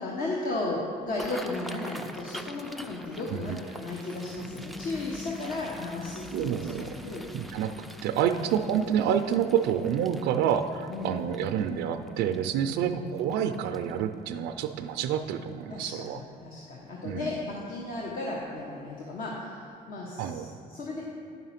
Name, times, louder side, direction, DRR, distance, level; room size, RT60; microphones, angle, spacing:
voice 1, 0.0-6.7 7.0-7.3 8.3-8.5 10.9-11.4 12.7-12.9 15.7-21.0, left 2 dB, 55° left, -3 dB, 1.1 m, -35 dB
sound 1, 1.0-14.1 14.6-14.9 15.2-15.6 16.1-16.2 17.4-17.6 18.0-18.1 18.6-18.7, equal, ahead, 0.3 m, -46 dB
sound 2, 4.3-11.0, left 3 dB, 30° left, 1.3 m, -47 dB
voice 2, 6.3-6.9 7.3-7.7 8.0-16.2 17.0-17.3 20.2-20.5, right 9 dB, 90° right, 7 dB, 0.4 m, -28 dB
9.5 x 5.6 x 5.8 m, 2.6 s
cardioid pair, 110°, 17 cm